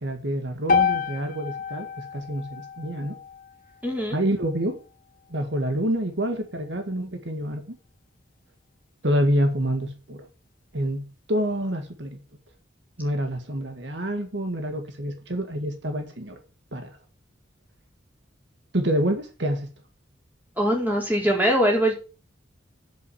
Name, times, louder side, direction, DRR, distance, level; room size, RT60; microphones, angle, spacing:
voice 1, 0.0-3.2 4.1-4.8 5.3-7.8 9.0-10.3 10.7-12.2 13.0-16.4 16.7-17.0 18.7-19.7, right 1 dB, 65° right, 1.8 m, -27 dB
sound 1, 0.7-4.9, left 6 dB, 45° left, 0.8 m, -29 dB
voice 2, 3.8-4.2 20.6-21.9, equal, 10° right, 4.2 m, -22 dB
8.4 x 8.0 x 7.3 m
head